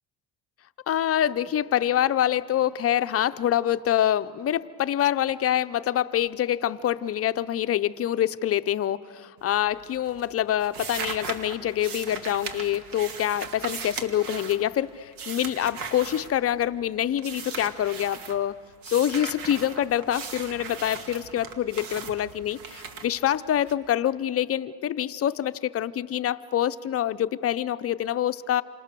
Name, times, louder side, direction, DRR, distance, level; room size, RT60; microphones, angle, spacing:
voice 1, 0.9-18.6 18.9-28.6, left 11 dB, 35° left, 13 dB, 0.6 m, -26 dB
sound 1, 9.4-9.8 10.1-16.8 17.2-18.4 18.8-23.7, right 5 dB, 75° right, 2.3 m, -38 dB
28.0 x 26.5 x 6.8 m, 2.2 s
cardioid pair, 125°, 40 cm